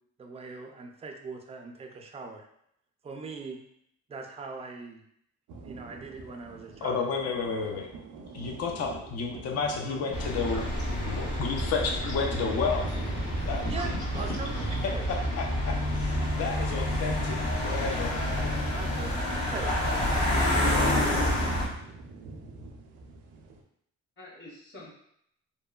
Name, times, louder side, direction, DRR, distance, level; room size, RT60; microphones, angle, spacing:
voice 1, 0.2-2.5 3.0-3.6 4.1-5.0 5.6-7.1 13.7-14.6 14.9-15.1 18.7-21.3, right 4 dB, 20° right, 3 dB, 0.4 m, -41 dB
sound 1, 5.5-23.6, right 3 dB, 85° right, 0.5 m, -45 dB
voice 2, 6.8-7.9 8.3-10.7 11.1-12.9 13.4-14.0 15.1-18.1, left 5 dB, 55° left, 2 dB, 0.5 m, -31 dB
sound 2, 10.1-21.7, left 1 dB, 70° left, 1.2 m, -28 dB
voice 3, 13.5-13.9 14.1-14.8 24.2-24.9, equal, 35° left, -3 dB, 0.9 m, -42 dB
2.8 x 2.1 x 2.3 m, 0.72 s
cardioid pair, 90°, 30 cm